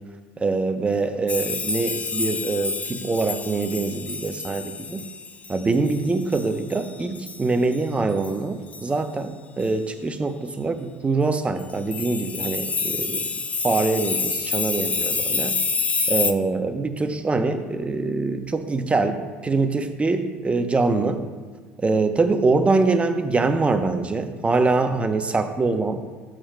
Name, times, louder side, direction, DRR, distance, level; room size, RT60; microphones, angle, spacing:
voice 1, 0.4-5.1 5.5-13.3 13.6-15.6 16.1-21.2 21.8-26.0, right 3 dB, 20° right, 8 dB, 0.7 m, -24 dB
sound 1, 1.3-7.5 7.7-7.8 8.1-8.3 8.7-8.9 9.6-9.7 11.6-16.3, left 4 dB, 25° left, 0.5 m, -28 dB
12.5 x 7.5 x 2.2 m, 1.6 s
hypercardioid pair, 75°, 6 cm